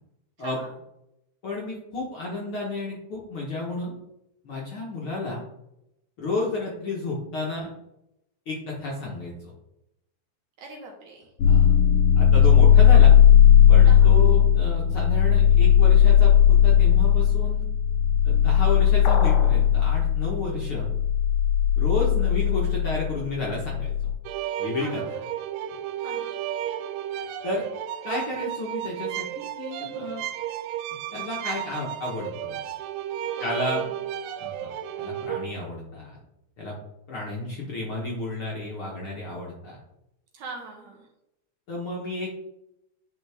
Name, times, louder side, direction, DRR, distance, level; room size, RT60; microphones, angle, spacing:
voice 1, 0.4-0.7 10.6-11.3 13.8-14.3 24.8-25.1 26.0-26.4 33.4-34.0 40.3-41.1, right 3 dB, 65° right, 1 dB, 2.2 m, -42 dB
voice 2, 1.4-3.9 4.4-5.4 6.2-7.7 8.5-9.5 11.5-11.8 12.1-13.1 13.7-17.7 18.2-20.9 21.8-23.9 24.6-25.2 27.1-27.7 28.0-30.2 31.1-32.6 33.4-33.8 34.4-34.7 35.0-36.2 36.6-36.8 37.1-39.8 41.7-42.3, left 2 dB, 55° left, -4 dB, 1.7 m, -32 dB
sound 1, 11.4-24.1, left 9 dB, 70° left, 1.7 m, -17 dB
sound 2, 19.0-19.6, left 5 dB, 85° left, 2.6 m, -30 dB
sound 3, 24.3-35.5, right 11 dB, 80° right, 2.1 m, -33 dB
9.3 x 4.7 x 3.5 m, 0.86 s
omnidirectional pair, 3.9 m